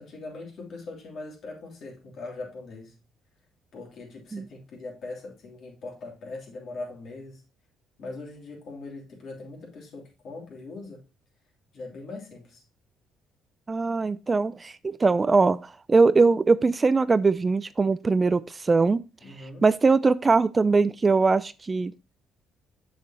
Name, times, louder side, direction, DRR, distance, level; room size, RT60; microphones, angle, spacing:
voice 1, 0.0-2.9 3.7-7.4 8.0-11.0 11.7-12.6 19.2-19.7, left 3 dB, 60° left, 3.0 m, -41 dB
voice 2, 13.7-15.6 15.9-19.0 19.6-21.9, right 4 dB, 25° right, 0.3 m, -21 dB
6.7 x 6.7 x 2.9 m
cardioid pair, 90°, 0 cm